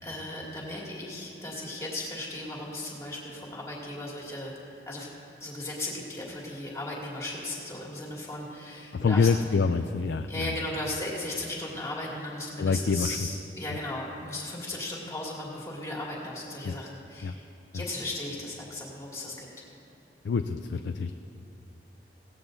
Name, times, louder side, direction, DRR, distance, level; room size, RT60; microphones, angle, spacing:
voice 1, 0.0-4.5 4.9-5.1 5.4-9.3 10.3-17.4 17.7-19.5, left 1 dB, 15° left, -4 dB, 2.4 m, -36 dB
voice 2, 8.9-10.6 12.6-13.2 16.6-16.8 17.2-17.3 17.7-17.8 20.2-21.2, left 5 dB, 85° left, 7 dB, 0.4 m, -26 dB
16.5 x 16.5 x 2.7 m, 2.6 s
head